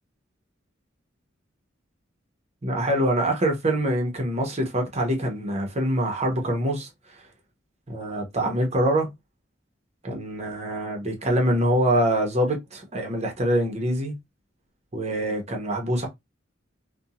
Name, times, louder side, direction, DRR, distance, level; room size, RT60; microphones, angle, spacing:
voice 1, 2.6-6.9 7.9-9.1 10.0-14.1 14.9-16.1, right 1 dB, 35° right, 0.8 m, -24 dB
2.6 x 2.2 x 2.8 m
head